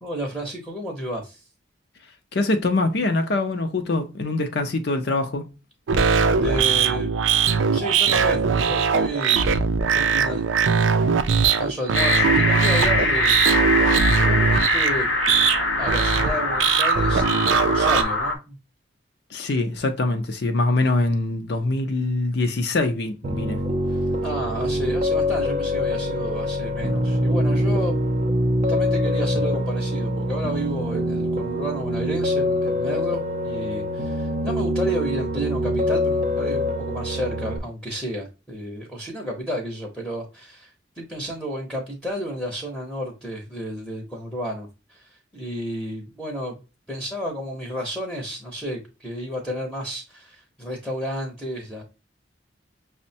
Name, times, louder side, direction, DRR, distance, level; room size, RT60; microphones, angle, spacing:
voice 1, 0.0-1.4 6.4-7.1 7.7-9.4 9.8-10.5 11.2-13.4 13.7-15.1 15.8-18.6 24.2-28.0 28.6-40.7 41.0-46.6 46.9-51.8, equal, ahead, 0.7 m, -31 dB
voice 2, 2.3-5.4 19.3-23.6, left 2 dB, 55° left, 0.5 m, -23 dB
sound 1, 5.9-18.0, right 6 dB, 90° right, 0.4 m, -20 dB
sound 2, 11.9-18.3, left 2 dB, 75° left, 0.9 m, -23 dB
Piano, 23.2-37.6, left 1 dB, 35° right, 0.5 m, -24 dB
6.0 x 2.1 x 2.6 m
head